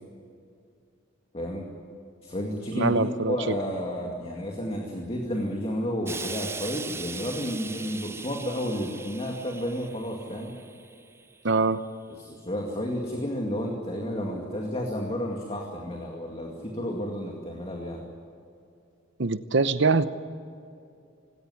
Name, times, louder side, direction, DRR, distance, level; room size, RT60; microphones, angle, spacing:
voice 1, 1.3-1.7 2.2-10.5 12.1-18.0, equal, 30° left, 1 dB, 2.2 m, -31 dB
voice 2, 2.7-3.3 11.4-11.8 19.2-20.1, right 3 dB, 65° right, 13 dB, 0.9 m, -23 dB
Explosion, 6.1-11.4 12.2-12.3, right 4 dB, 15° right, 0.5 m, -40 dB
18.5 x 17.5 x 9.8 m, 2.5 s
head